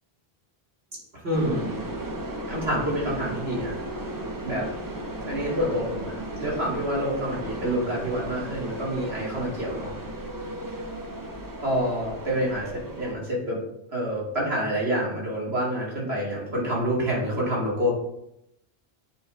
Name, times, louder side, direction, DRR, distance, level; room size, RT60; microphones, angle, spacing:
voice 1, 1.2-1.8 2.5-3.7 4.4-4.7 5.3-9.9 11.6-13.6 13.9-17.9, equal, 85° right, -5 dB, 2.5 m, -27 dB
sound 1, 1.3-13.1, right 1 dB, 25° right, 0.6 m, -35 dB
8.6 x 3.9 x 3.3 m, 0.82 s
omnidirectional pair, 1.1 m